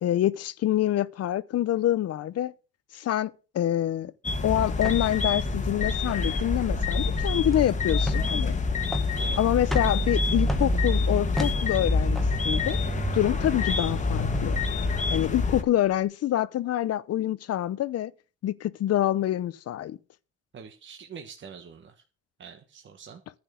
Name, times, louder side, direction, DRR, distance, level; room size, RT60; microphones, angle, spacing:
voice 1, 0.0-2.5 2.9-4.1 4.4-8.6 9.4-12.2 12.4-12.8 13.1-14.6 15.1-18.1 18.4-20.0, left 12 dB, 50° left, 0.7 m, -26 dB
sound 1, 4.2-15.6, left 3 dB, 25° left, 1.6 m, -26 dB
sound 2, 4.8-16.0, equal, ahead, 1.5 m, -38 dB
voice 2, 20.5-21.9 22.4-23.2, right 6 dB, 35° right, 1.5 m, -44 dB
10.5 x 5.9 x 8.4 m
cardioid pair, 125°, 31 cm